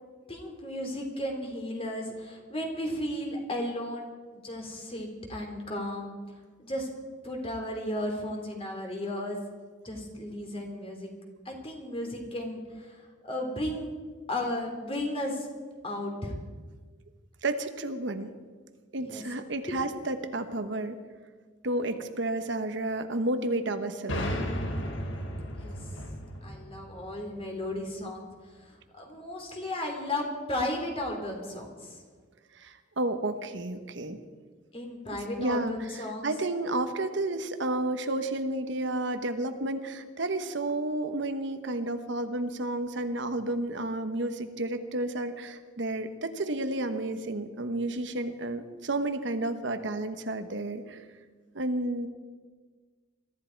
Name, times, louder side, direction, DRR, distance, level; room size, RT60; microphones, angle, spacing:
voice 1, 0.3-4.1 4.4-6.1 6.6-6.9 7.2-9.4 9.8-11.1 11.4-13.9 14.3-15.5 15.8-16.4 19.0-19.2 25.5-25.8 26.4-28.3 28.6-32.0 34.7-36.3, left 1 dB, 30° left, 2 dB, 3.0 m, -34 dB
voice 2, 17.4-18.3 18.9-21.0 21.6-24.2 32.5-34.2 35.1-51.0 51.5-52.1, right 2 dB, 65° right, 8 dB, 1.1 m, -31 dB
sound 1, 24.1-27.7, equal, 75° left, 1.7 m, -34 dB
22.5 x 13.5 x 4.6 m, 1.5 s
head